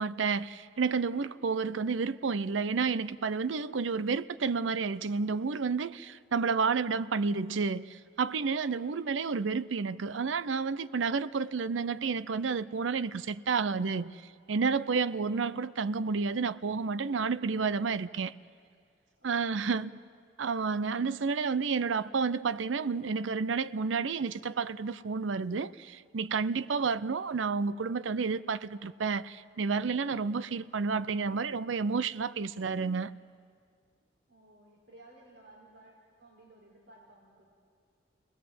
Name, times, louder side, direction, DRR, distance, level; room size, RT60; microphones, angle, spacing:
voice 1, 0.0-14.1 14.5-18.3 19.2-19.9 20.4-33.1, right 5 dB, 85° right, 0.6 m, -30 dB
voice 2, 19.2-20.0 34.3-37.4, right 1 dB, 65° right, 4.2 m, -56 dB
29.5 x 20.0 x 7.7 m
head